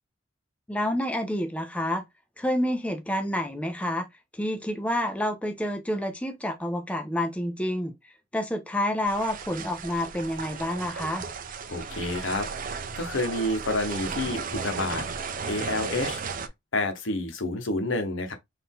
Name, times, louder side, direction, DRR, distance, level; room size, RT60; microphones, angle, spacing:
voice 1, 0.7-2.0 2.4-4.1 4.3-11.2, left 1 dB, 5° left, 0.5 m, -29 dB
sound 1, 9.0-16.5, right 5 dB, 45° right, 0.6 m, -35 dB
voice 2, 11.7-12.5 13.0-16.2 16.7-18.3, left 2 dB, 65° left, 1.0 m, -29 dB
4.2 x 2.7 x 3.5 m
head